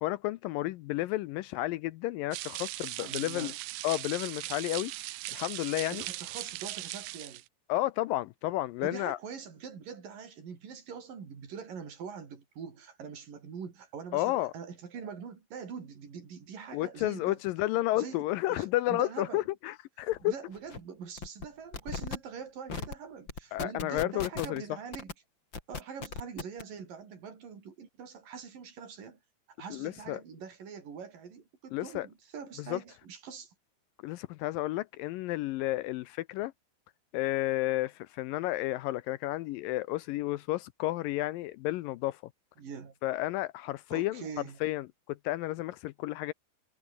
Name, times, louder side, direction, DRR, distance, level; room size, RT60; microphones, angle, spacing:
voice 1, 0.0-3.5 3.8-4.9 5.3-6.0 7.7-9.2 14.1-14.5 16.7-20.3 23.5-24.6 29.7-30.2 31.7-32.1 32.6-32.8 34.0-36.5 37.1-42.2 43.0-44.3 44.6-46.3, left 16 dB, 85° left, 2.0 m, -32 dB
sound 1, 2.3-7.5, right 17 dB, 85° right, 1.8 m, -39 dB
voice 2, 3.0-3.5 5.9-7.4 8.8-17.4 18.0-18.2 18.5-19.4 20.2-25.1 25.7-29.2 29.6-33.5 42.6-43.0 43.9-44.6, right 6 dB, 55° right, 5.7 m, -44 dB
sound 2, 20.1-20.2 20.5-20.8 21.2-21.5 21.7-22.2 22.7-22.9 23.3-24.6 24.9-25.1 25.5-26.6, left 4 dB, 30° left, 3.4 m, -37 dB
omnidirectional pair, 4.8 m